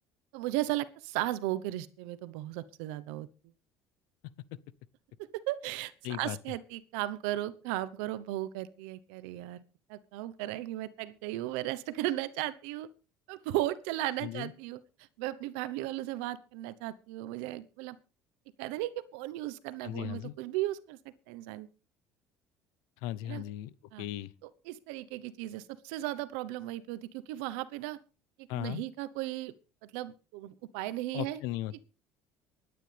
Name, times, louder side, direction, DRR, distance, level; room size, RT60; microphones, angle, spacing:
voice 1, 0.3-3.3 5.3-5.9 6.2-9.6 9.9-12.9 13.3-14.8 15.2-18.0 18.6-21.0 21.3-21.7 23.3-23.4 23.9-24.1 24.4-28.0 28.5-29.5 29.8-31.4, right 15 dB, 85° right, 1.0 m, -36 dB
voice 2, 6.0-6.4 14.2-14.5 19.8-20.3 23.0-24.3 28.5-28.8 31.1-31.8, left 14 dB, 80° left, 0.8 m, -37 dB
24.0 x 9.9 x 3.4 m
supercardioid pair, 85°, 7 cm